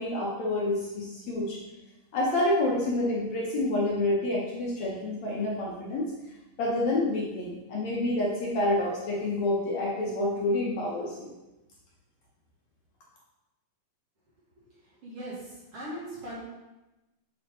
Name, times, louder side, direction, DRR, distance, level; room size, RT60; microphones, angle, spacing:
voice 1, 0.0-1.6 2.1-6.1 6.6-11.3, left 1 dB, 65° left, -4 dB, 1.9 m, -28 dB
voice 2, 14.6-16.4, right 1 dB, 50° right, -8 dB, 2.2 m, -40 dB
8.3 x 3.8 x 3.6 m, 1.0 s
omnidirectional pair, 3.9 m